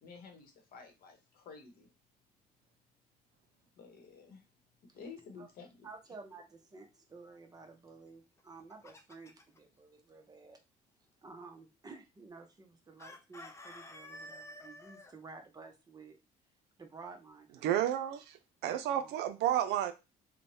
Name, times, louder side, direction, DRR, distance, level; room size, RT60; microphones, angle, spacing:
voice 1, 0.0-1.9 3.7-4.4 4.8-5.9, left 5 dB, 60° left, 0.9 m, -52 dB
voice 2, 5.8-10.6 11.2-16.2 16.8-17.8 18.6-19.1, right 4 dB, 20° right, 0.7 m, -52 dB
Chicken rooster, 8.4-9.6 13.0-15.1, left 1 dB, 15° left, 0.4 m, -50 dB
voice 3, 17.6-18.4 18.6-19.9, right 11 dB, 80° right, 0.5 m, -31 dB
3.1 x 2.1 x 2.7 m
cardioid pair, 110°, 17 cm